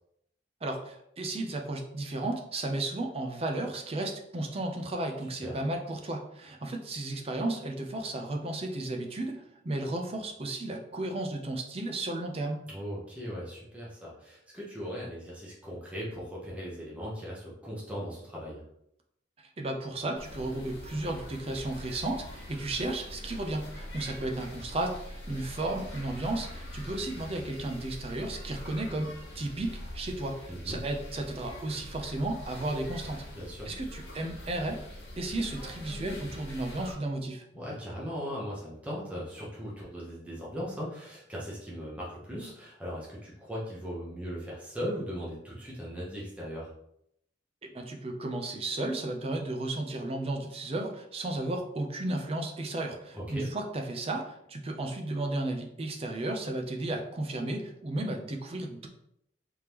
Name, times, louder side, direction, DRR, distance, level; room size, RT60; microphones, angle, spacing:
voice 1, 0.6-12.6 19.6-33.2 33.7-34.8 35.2-37.4 47.7-58.9, right 2 dB, 35° right, 3 dB, 0.5 m, -34 dB
voice 2, 12.7-18.6 30.5-30.8 33.3-33.7 37.5-46.7 53.1-53.5, equal, 10° right, -6 dB, 0.9 m, -38 dB
sound 1, 20.2-36.9, left 1 dB, 65° left, 1.1 m, -43 dB
3.5 x 3.3 x 2.9 m, 0.76 s
head